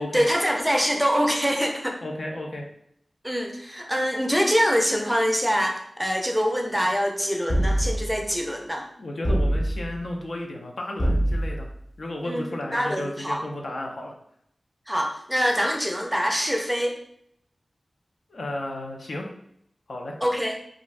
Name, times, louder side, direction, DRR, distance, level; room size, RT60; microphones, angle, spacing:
voice 1, 0.0-1.9 3.2-8.9 12.2-12.4 12.7-13.4 14.9-17.0 20.2-20.6, equal, 5° right, 2 dB, 0.4 m, -24 dB
voice 2, 2.0-2.7 9.0-11.7 12.0-14.1 18.3-19.3 19.9-20.1, left 1 dB, 80° left, 1 dB, 0.5 m, -33 dB
sound 1, 7.5-8.2 9.2-10.0 11.0-11.7, right 1 dB, 35° left, 0.6 m, -24 dB
2.6 x 2.4 x 3.2 m, 0.71 s
wide cardioid pair, 85°, 0 cm